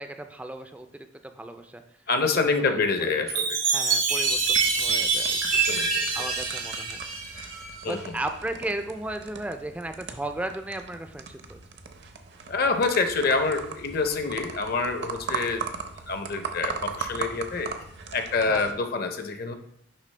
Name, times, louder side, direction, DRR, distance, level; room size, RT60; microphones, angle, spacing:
voice 1, 0.0-1.8 2.3-3.1 3.7-5.6 6.1-7.0 7.9-11.6 18.5-18.6, right 1 dB, 5° right, 7 dB, 0.3 m, -35 dB
voice 2, 2.1-3.6 5.7-6.1 7.8-8.2 12.5-15.7 16.1-17.7 18.1-19.5, left 4 dB, 50° left, 7 dB, 0.6 m, -26 dB
Chime, 3.3-7.9, right 4 dB, 85° right, 2.3 m, -25 dB
sound 1, 4.1-18.7, right 6 dB, 60° right, 0.6 m, -39 dB
10.0 x 3.4 x 3.2 m, 0.72 s
head